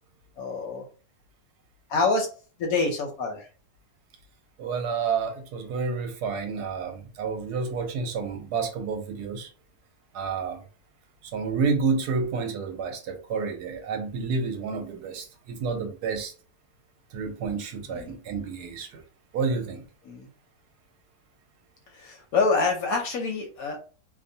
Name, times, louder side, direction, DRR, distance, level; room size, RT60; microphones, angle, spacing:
voice 1, 0.4-0.8 1.9-2.3 2.6-3.5 17.9-18.2 20.0-20.3 21.9-23.8, left 3 dB, 70° left, 2 dB, 0.9 m, -26 dB
voice 2, 4.6-9.5 10.1-10.6 11.3-16.3 17.1-19.0 19.3-19.8, right 5 dB, 75° right, 4 dB, 1.1 m, -29 dB
2.8 x 2.0 x 2.6 m, 0.37 s
omnidirectional pair, 1.8 m